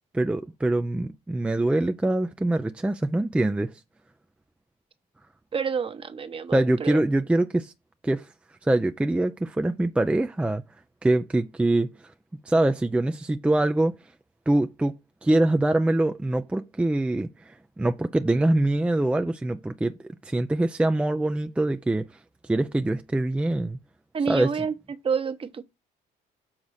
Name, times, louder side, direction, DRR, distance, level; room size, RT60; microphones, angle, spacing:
voice 1, 0.1-3.8 6.5-7.7 8.0-8.3 8.6-10.6 11.0-11.9 12.4-14.0 14.5-15.0 15.2-23.8 24.3-24.7, right 1 dB, 5° right, 0.5 m, -24 dB
voice 2, 5.5-7.0 24.1-25.6, right 6 dB, 35° right, 1.0 m, -29 dB
7.3 x 3.8 x 6.3 m
cardioid pair, 110°, 17 cm